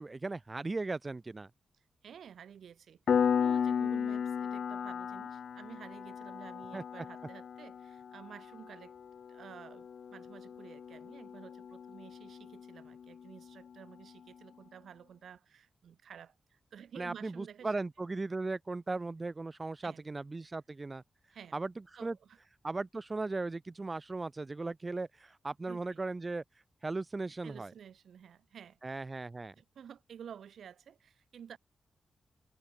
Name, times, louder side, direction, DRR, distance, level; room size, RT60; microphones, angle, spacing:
voice 1, 0.0-1.5 6.7-7.1 17.0-21.0 21.5-21.7 22.0-22.2 22.6-26.4 26.8-27.7 28.8-29.6, right 3 dB, 35° right, 1.9 m, -37 dB
voice 2, 2.0-3.0 3.3-8.9 9.3-17.7 19.8-20.1 21.3-21.6 21.9-22.4 25.7-26.0 27.4-29.0 29.5-31.6, right 8 dB, 80° right, 3.3 m, -52 dB
Piano, 3.1-13.5, left 7 dB, 75° left, 1.6 m, -35 dB
cardioid pair, 50°, 0 cm